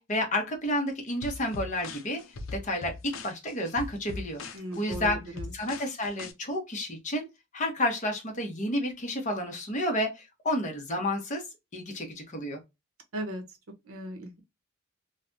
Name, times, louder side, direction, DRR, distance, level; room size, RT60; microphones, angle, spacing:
voice 1, 0.0-2.2 2.5-2.9 3.2-4.4 4.7-7.2 7.5-11.4 11.7-12.6, left 1 dB, 35° left, 1.0 m, -30 dB
sound 1, 1.2-6.3, left 3 dB, 75° left, 0.6 m, -40 dB
voice 2, 4.5-5.4 13.1-13.4 13.9-14.4, right 1 dB, 80° right, 1.0 m, -37 dB
3.2 x 2.3 x 2.6 m
head